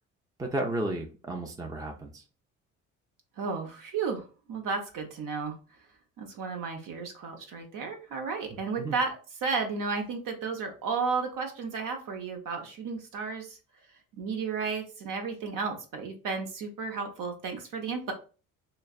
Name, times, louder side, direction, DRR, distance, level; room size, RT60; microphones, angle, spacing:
voice 1, 0.4-2.2 8.8-8.9, right 2 dB, 10° right, 2 dB, 0.6 m, -33 dB
voice 2, 3.4-4.2 4.5-5.5 6.2-13.6 14.1-18.1, right 4 dB, 50° right, 4 dB, 0.8 m, -33 dB
3.2 x 2.0 x 2.3 m, 0.35 s
hypercardioid pair, 60°, 40 cm